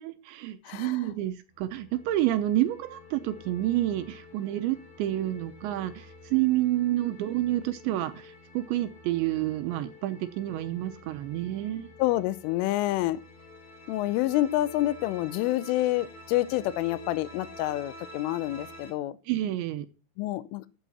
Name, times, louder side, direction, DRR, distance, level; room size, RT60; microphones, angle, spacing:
voice 1, 0.0-11.9 19.3-19.9, right 14 dB, 80° right, 10 dB, 2.8 m, -29 dB
voice 2, 0.6-1.1 12.0-13.2 13.9-19.2 20.2-20.7, left 15 dB, 90° left, 17 dB, 3.3 m, -28 dB
sound 1, 1.5-18.9, left 2 dB, 45° left, 3.3 m, -49 dB
12.5 x 8.1 x 4.3 m, 0.32 s
omnidirectional pair, 5.6 m